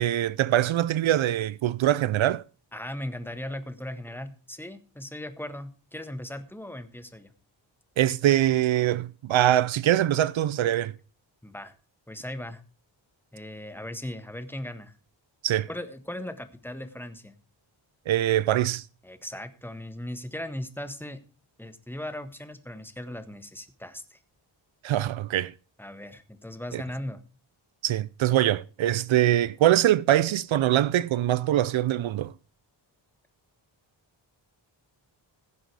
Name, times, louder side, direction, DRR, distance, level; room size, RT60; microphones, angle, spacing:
voice 1, 0.0-2.4 8.0-10.9 15.4-15.7 18.1-18.8 24.8-25.5 26.7-26.8 27.8-32.3, right 13 dB, 80° right, 0.5 m, -23 dB
voice 2, 2.7-7.3 11.4-11.7 12.1-12.6 13.3-15.0 15.7-17.4 19.0-21.2 21.6-24.2 25.8-27.2, left 1 dB, 5° left, 1.4 m, -38 dB
16.0 x 7.6 x 4.8 m
wide cardioid pair, 95°, 46 cm